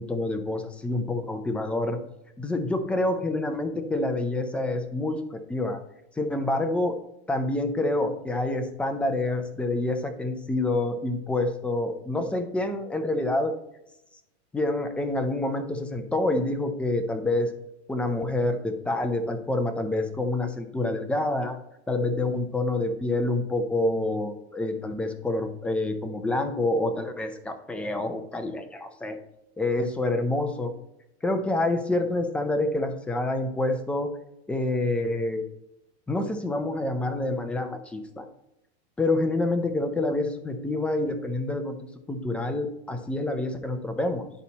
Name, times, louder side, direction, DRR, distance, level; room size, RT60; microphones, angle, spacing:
voice 1, 0.0-2.0 2.4-5.8 6.2-7.0 7.3-13.5 14.5-17.5 17.9-21.6 21.9-29.2 29.6-30.7 31.2-34.1 34.5-35.4 36.1-38.3 39.0-41.8 42.1-44.3, left 2 dB, 5° left, 6 dB, 0.4 m, -27 dB
10.0 x 4.2 x 4.1 m, 0.84 s
supercardioid pair, 150°, 32 cm